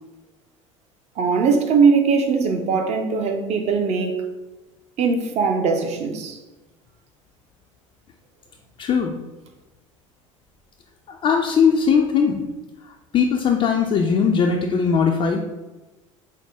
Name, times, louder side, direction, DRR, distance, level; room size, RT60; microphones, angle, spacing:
voice 1, 1.2-4.2 5.0-6.4, right 5 dB, 40° right, 4 dB, 0.7 m, -20 dB
voice 2, 8.8-9.1 11.1-12.4 12.8-15.4, left 6 dB, 30° left, 1 dB, 0.4 m, -19 dB
5.5 x 2.1 x 3.4 m, 1.1 s
figure-of-eight pair, 70°, 17 cm